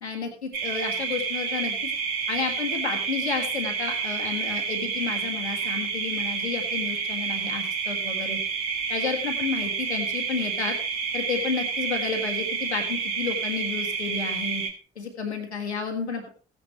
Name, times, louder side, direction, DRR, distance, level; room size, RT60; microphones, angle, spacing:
voice 1, 0.0-1.8 2.3-8.4 8.9-10.8 11.1-14.6 15.0-16.3, left 5 dB, 90° left, 2 dB, 1.8 m, -31 dB
sound 1, 0.5-14.7, right 5 dB, 60° right, 2.5 m, -29 dB
15.5 x 9.8 x 3.2 m, 0.39 s
figure-of-eight pair, 45°, 33 cm